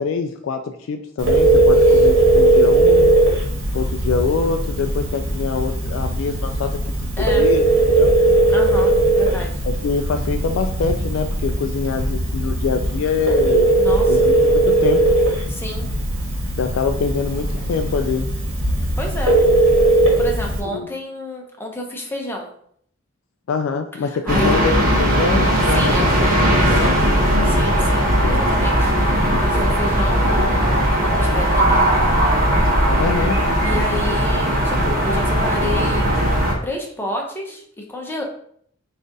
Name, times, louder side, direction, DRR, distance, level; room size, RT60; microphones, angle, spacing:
voice 1, 0.0-3.2 3.7-8.1 9.6-13.7 14.1-15.1 16.6-18.3 20.7-20.9 23.5-27.0 28.0-28.5 33.0-33.4, left 5 dB, 80° left, 6 dB, 0.3 m, -24 dB
Telephone, 1.2-20.6, right 2 dB, 75° right, 1.1 m, -18 dB
voice 2, 7.2-7.5 8.5-9.6 13.8-14.3 15.5-15.9 19.0-19.4 20.2-22.5 24.0-24.6 25.7-27.0 27.4-31.8 33.6-36.0 36.6-37.6 37.9-38.2, left 1 dB, 10° left, 1 dB, 0.6 m, -30 dB
sound 1, 24.3-36.5, equal, 45° right, 0.9 m, -18 dB
3.8 x 2.4 x 3.8 m, 0.64 s
head